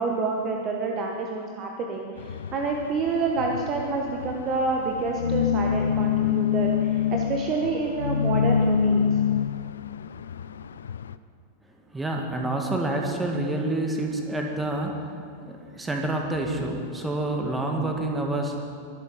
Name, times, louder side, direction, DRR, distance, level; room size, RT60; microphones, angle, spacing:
voice 1, 0.0-9.1, right 3 dB, 35° right, 2 dB, 1.3 m, -28 dB
sound 1, 2.2-11.2, left 7 dB, 65° left, 0.4 m, -26 dB
voice 2, 11.9-15.1 15.7-18.6, right 2 dB, 10° right, 1 dB, 2.1 m, -27 dB
21.5 x 8.3 x 5.0 m, 2.5 s
figure-of-eight pair, 90°, 0 cm